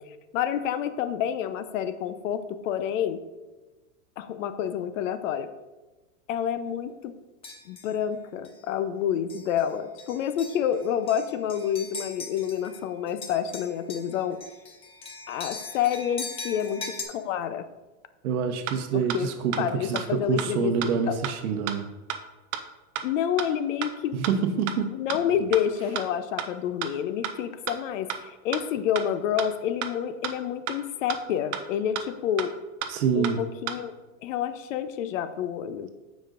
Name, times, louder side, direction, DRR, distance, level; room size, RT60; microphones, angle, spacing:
voice 1, 0.3-3.2 4.2-5.5 6.3-7.1 7.7-14.4 15.3-17.7 19.1-19.3 19.6-20.7 21.1-21.2 23.0-24.1 24.9-32.6 33.1-33.9 34.2-35.9, left 9 dB, 60° left, 11 dB, 0.8 m, -28 dB
sound 1, 7.4-7.9 8.4-8.6 9.3-9.6 10.0-12.8 13.1-17.0, left 4 dB, 15° left, 0.7 m, -40 dB
voice 2, 18.2-21.9 24.1-24.9 32.9-33.4, right 6 dB, 80° right, 6 dB, 1.0 m, -27 dB
sound 2, 18.7-18.8 19.1-19.2 19.5-19.6 19.9-20.0 20.4-20.5 20.8-20.9 21.2-21.3 21.7-21.8 22.1-22.2 22.5-22.6 22.9-23.0 23.4-23.5 23.8-23.9 24.2-24.3 24.7-24.8 25.1-25.2 25.5-25.6 25.9-26.0 26.4-26.5 26.8-26.9 27.2-27.3 27.7-27.8 28.1-28.2 28.5-28.6 28.9-29.0 29.4-29.5 29.8-29.9 30.2-30.3 30.7-30.8 31.1-31.2 31.5-31.6 31.9-32.0 32.4-32.5 32.8-32.9 33.2-33.3 33.7-33.8, right 10 dB, 30° right, 0.5 m, -30 dB
15.5 x 5.2 x 2.5 m, 1.1 s
supercardioid pair, 150°, 43 cm